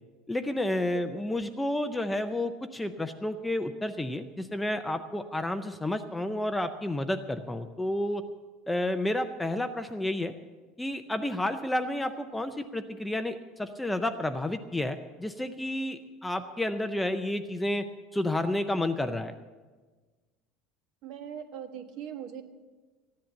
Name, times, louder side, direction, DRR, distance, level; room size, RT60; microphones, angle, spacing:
voice 1, 0.3-8.2 8.7-10.3 10.8-19.3, left 1 dB, 5° left, 8 dB, 0.4 m, -31 dB
voice 2, 0.8-1.2 21.0-22.4, right 8 dB, 50° right, 6 dB, 1.4 m, -41 dB
15.0 x 10.5 x 6.9 m, 1.3 s
cardioid pair, 180°, 0 cm